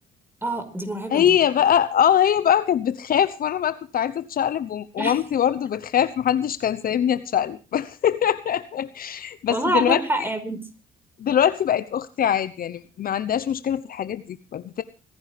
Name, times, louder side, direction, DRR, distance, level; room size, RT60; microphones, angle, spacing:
voice 1, 0.4-1.4 5.0-5.2 9.5-10.7, right 1 dB, 10° right, 8 dB, 5.1 m, -26 dB
voice 2, 1.1-10.0 11.2-14.8, left 9 dB, 55° left, 13 dB, 1.0 m, -22 dB
25.5 x 10.5 x 3.5 m, 0.33 s
hypercardioid pair, 55°, 18 cm